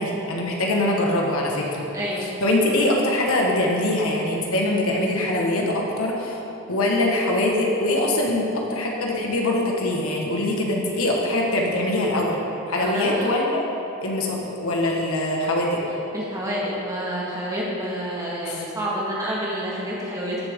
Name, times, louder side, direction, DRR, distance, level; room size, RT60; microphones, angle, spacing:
voice 1, 0.0-1.8 2.4-6.4 6.7-12.4 12.7-13.6 14.0-15.8 18.4-18.6, left 1 dB, 70° left, -1 dB, 1.4 m, -23 dB
voice 2, 12.8-13.3 16.1-20.5, equal, 15° right, -6 dB, 1.7 m, -28 dB
14.0 x 7.1 x 3.6 m, 3.0 s
head